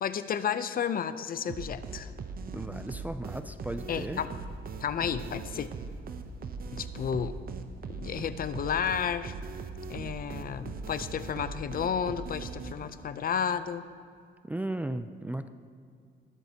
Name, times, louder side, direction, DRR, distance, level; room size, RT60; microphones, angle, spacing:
voice 1, 0.0-2.1 3.9-4.3 4.8-5.7 6.7-7.4 7.9-9.3 9.9-13.8, left 8 dB, 45° left, 13 dB, 0.5 m, -32 dB
sound 1, 1.5-13.1, right 4 dB, 50° right, 0.7 m, -40 dB
voice 2, 2.5-4.2 14.4-15.5, right 1 dB, 10° right, 9 dB, 0.4 m, -35 dB
20.0 x 7.6 x 2.8 m, 2.2 s
cardioid pair, 90°, 20 cm